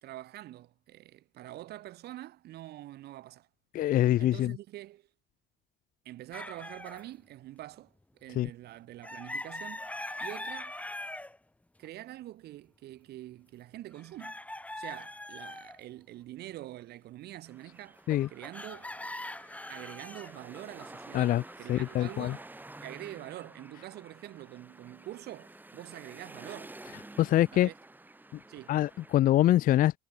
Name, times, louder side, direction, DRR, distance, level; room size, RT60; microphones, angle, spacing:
voice 1, 0.0-3.5 4.2-5.0 6.0-10.8 11.8-14.3 14.8-18.0 18.3-18.9 19.7-22.4 22.8-26.8 27.5-27.7 28.5-28.8, right 15 dB, 75° right, 2.8 m, -45 dB
voice 2, 3.7-4.6 8.4-8.5 18.1-18.3 21.1-21.4 21.7-22.4 27.2-27.7 28.7-30.0, left 13 dB, 55° left, 0.5 m, -24 dB
sound 1, 6.3-7.1 9.0-11.4 11.8-11.9 13.9-15.8 18.0-22.5, left 1 dB, 10° left, 5.0 m, -42 dB
sound 2, 17.4-29.2, right 2 dB, 10° right, 3.5 m, -51 dB
cardioid pair, 110°, 17 cm